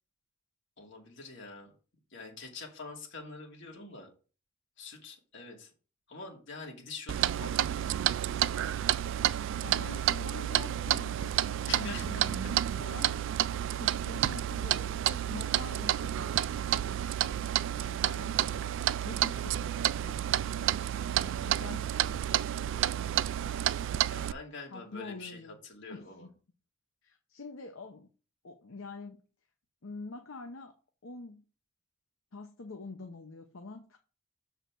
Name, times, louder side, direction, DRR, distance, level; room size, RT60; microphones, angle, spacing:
voice 1, 0.8-1.7 2.1-4.1 4.8-5.7 6.1-7.5 11.7-12.2 21.2-21.5 24.1-26.3, left 3 dB, 65° left, 1 dB, 2.6 m, -45 dB
Clock, 7.1-24.3, right 11 dB, 70° right, 0.3 m, -30 dB
voice 2, 9.6-13.2 13.8-16.7 17.2-17.4 17.8-22.6 24.7-25.6 25.9-26.3 27.0-28.1 28.4-29.2 29.8-30.7 31.0-31.4 32.3-34.0, left 3 dB, 85° left, 5 dB, 0.8 m, -46 dB
6.7 x 4.8 x 6.2 m, 0.36 s
head